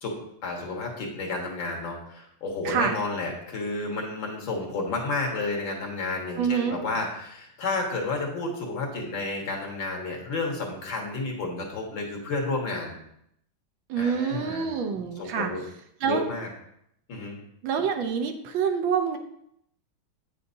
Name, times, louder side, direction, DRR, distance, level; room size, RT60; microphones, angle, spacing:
voice 1, 0.0-13.0 14.0-14.7 15.2-15.6 16.0-16.5 17.1-17.4, left 3 dB, 65° left, 0 dB, 2.1 m, -31 dB
voice 2, 6.4-6.8 13.9-15.5 16.0-16.2 17.6-19.2, right 7 dB, 75° right, 6 dB, 1.4 m, -26 dB
8.9 x 6.7 x 2.6 m, 0.74 s
omnidirectional pair, 2.3 m